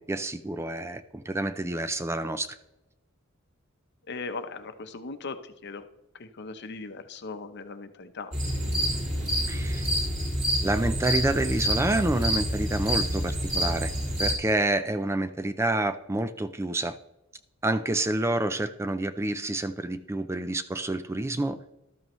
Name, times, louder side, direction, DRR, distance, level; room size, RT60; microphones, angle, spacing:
voice 1, 0.1-2.5 9.5-9.8 10.6-13.9 14.2-17.0 17.6-21.7, right 2 dB, 15° right, 11 dB, 0.4 m, -28 dB
voice 2, 4.1-5.8 6.2-8.3, left 3 dB, 55° left, 9 dB, 0.8 m, -38 dB
sound 1, 8.3-14.3, equal, 40° right, 5.1 m, -27 dB
12.5 x 12.5 x 3.1 m, 0.92 s
head